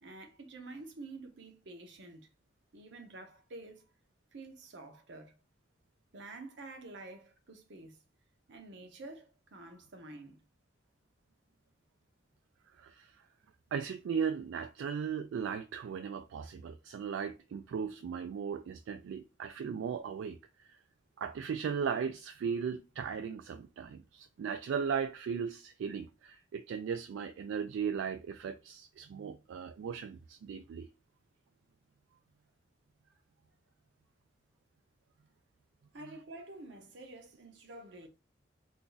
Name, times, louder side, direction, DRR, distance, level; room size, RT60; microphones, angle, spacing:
voice 1, 0.0-2.3 2.7-3.8 4.3-5.4 6.1-8.0 8.5-10.4 35.9-38.1, right 2 dB, 70° right, 0.7 m, -49 dB
voice 2, 12.8-13.2 13.7-20.8 21.2-30.9, right 6 dB, 85° right, 0.3 m, -37 dB
2.6 x 2.3 x 3.8 m
head